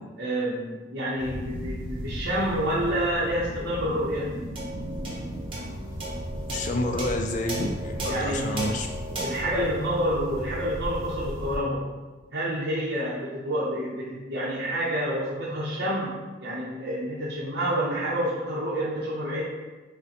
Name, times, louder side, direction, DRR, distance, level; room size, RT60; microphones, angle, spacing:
voice 1, 0.2-4.3 8.1-8.6 9.2-11.9 12.3-19.4, equal, 60° right, -8 dB, 0.7 m, -28 dB
sound 1, 1.2-11.6, equal, 85° right, 1.0 m, -36 dB
sound 2, 4.5-11.2, right 1 dB, 30° right, 0.9 m, -36 dB
voice 2, 6.5-8.9, left 2 dB, 40° left, 3 dB, 0.3 m, -29 dB
6.3 x 2.2 x 2.9 m, 1.3 s
head